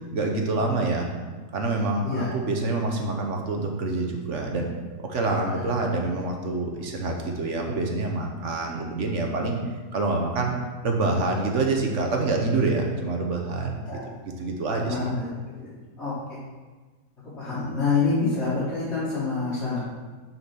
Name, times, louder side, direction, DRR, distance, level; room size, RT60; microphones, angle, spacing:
voice 1, 0.1-1.1 1.5-4.7 5.0-9.6 9.9-10.5 10.8-14.0 14.4-15.0, right 3 dB, 50° right, 2 dB, 1.1 m, -26 dB
voice 2, 14.7-15.3 15.6-15.7 16.0-16.4 17.4-19.9, left 4 dB, 40° left, -11 dB, 1.9 m, -27 dB
6.4 x 4.5 x 5.8 m, 1.3 s
omnidirectional pair, 1.8 m